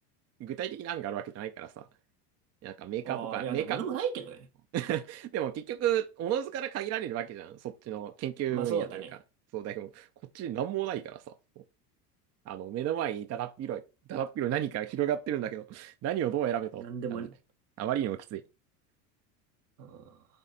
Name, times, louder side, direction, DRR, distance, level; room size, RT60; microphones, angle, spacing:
voice 1, 0.4-1.9 2.6-3.8 4.7-9.0 9.5-10.1 10.3-11.6 12.5-13.8 14.1-16.8 17.1-17.3 17.8-18.4, right 11 dB, 35° right, 0.6 m, -33 dB
voice 2, 3.0-4.5 8.5-9.1 16.8-17.3 19.8-20.2, right 7 dB, 80° right, 1.6 m, -35 dB
8.9 x 3.3 x 4.1 m
hypercardioid pair, 90°, 48 cm